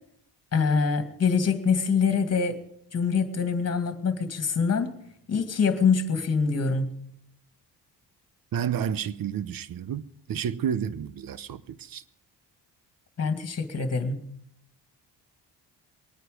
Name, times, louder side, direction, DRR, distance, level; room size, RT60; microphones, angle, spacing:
voice 1, 0.5-2.6 2.9-4.9 5.3-6.9 13.2-14.2, left 5 dB, 35° left, 2.2 m, -24 dB
voice 2, 8.5-12.0, right 8 dB, 50° right, 0.9 m, -31 dB
23.5 x 9.3 x 5.2 m
cardioid pair, 100°, 43 cm